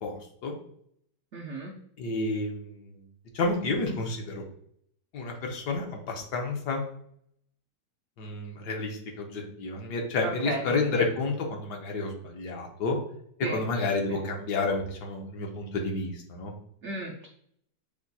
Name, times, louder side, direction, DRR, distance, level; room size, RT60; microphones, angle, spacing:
voice 1, 0.0-0.5 2.0-3.0 3.3-4.4 5.1-6.9 8.2-13.0 13.4-16.5, left 3 dB, 70° left, 2 dB, 1.4 m, -30 dB
voice 2, 1.3-1.7 10.2-10.6 10.9-11.1 13.4-13.6 14.1-14.2 16.8-17.3, right 3 dB, 75° right, 2 dB, 0.6 m, -34 dB
6.0 x 2.2 x 4.0 m, 0.68 s
omnidirectional pair, 1.9 m